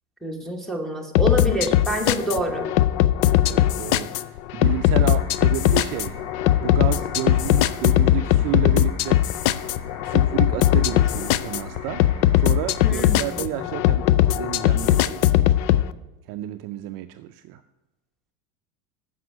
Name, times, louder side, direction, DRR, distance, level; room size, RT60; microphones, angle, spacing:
voice 1, 0.2-2.7 12.8-13.7, right 1 dB, ahead, -1 dB, 1.2 m, -27 dB
sound 1, 1.1-15.8, left 13 dB, 60° left, 0.5 m, -20 dB
voice 2, 3.4-6.1 6.6-9.2 10.0-12.1 12.4-15.8 16.3-17.6, right 13 dB, 50° right, 9 dB, 0.5 m, -31 dB
sound 2, 4.6-12.9, left 3 dB, 45° left, 1.8 m, -40 dB
7.6 x 5.5 x 6.0 m, 1.0 s
supercardioid pair, 115°, 44 cm